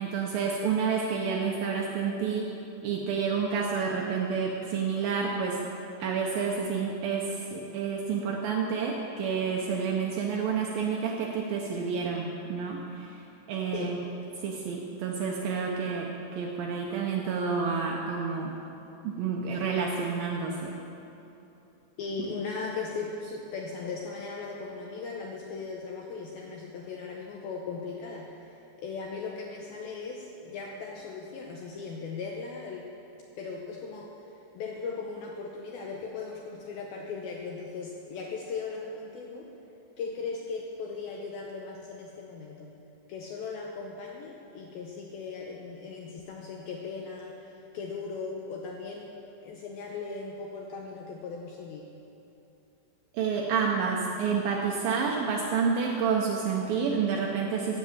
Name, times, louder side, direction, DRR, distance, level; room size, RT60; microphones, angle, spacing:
voice 1, 0.0-2.6 2.8-5.6 6.0-13.2 13.5-14.0 14.4-18.6 19.0-20.8 22.2-22.3 53.1-57.8, right 5 dB, 85° right, -1 dB, 2.0 m, -29 dB
voice 2, 22.0-32.9 33.4-34.2 34.5-39.5 40.0-42.8 43.1-49.1 49.4-51.9, left 4 dB, 80° left, 0 dB, 2.2 m, -38 dB
16.0 x 7.3 x 7.3 m, 2.9 s
omnidirectional pair, 5.3 m